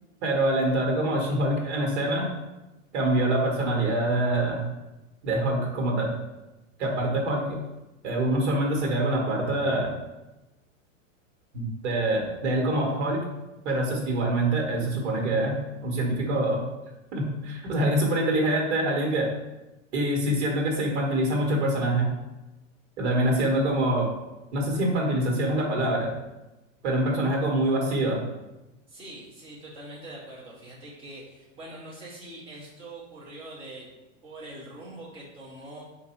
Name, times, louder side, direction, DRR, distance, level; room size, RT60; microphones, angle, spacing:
voice 1, 0.2-2.3 2.9-4.6 5.2-6.1 6.8-7.6 8.0-9.9 11.5-13.2 13.6-16.6 17.1-19.3 19.9-22.1 23.0-24.1 24.5-26.1 26.8-28.2, right 1 dB, 65° right, 0 dB, 1.4 m, -25 dB
voice 2, 28.9-33.9 34.2-35.8, right 1 dB, 15° right, -6 dB, 0.9 m, -43 dB
3.9 x 2.6 x 4.4 m, 1.0 s
supercardioid pair, 165°, 38 cm